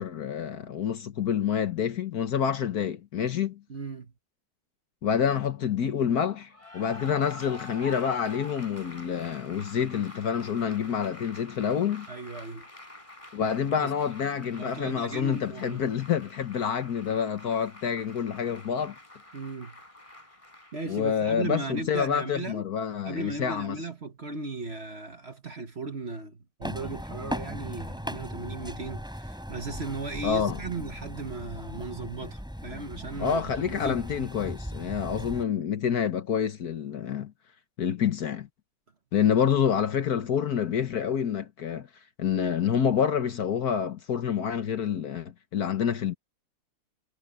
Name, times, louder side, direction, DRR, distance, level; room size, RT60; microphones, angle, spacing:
voice 1, 0.0-3.6 5.0-12.1 13.3-18.9 20.9-23.8 30.2-30.6 33.2-37.3 37.8-38.5 39.1-41.9 42.2-46.1, left 8 dB, 60° left, 1.5 m, -27 dB
voice 2, 3.7-4.1 12.1-12.7 13.8-13.9 14.5-15.8 19.3-19.8 20.7-22.6 23.0-34.0, right 3 dB, 35° right, 1.6 m, -37 dB
Cheering / Applause, 6.5-21.4, left 2 dB, 15° left, 3.9 m, -47 dB
sound 1, 26.6-35.4, equal, ahead, 4.9 m, -38 dB
omnidirectional pair, 2.0 m